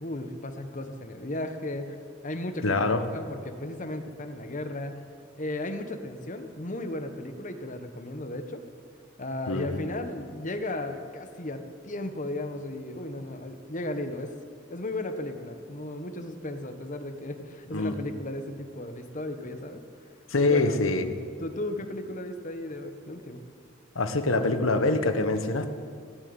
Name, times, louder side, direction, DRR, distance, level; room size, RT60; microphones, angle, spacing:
voice 1, 0.0-2.0 2.2-2.8 3.1-5.1 5.4-8.6 9.2-14.3 14.7-19.8 20.4-21.1 21.4-23.4, left 1 dB, 40° left, 7 dB, 1.2 m, -35 dB
voice 2, 2.6-3.0 9.5-9.8 17.7-17.9 20.3-21.2 23.9-25.7, left 2 dB, 85° left, 8 dB, 1.2 m, -25 dB
17.0 x 7.9 x 9.7 m, 2.2 s
head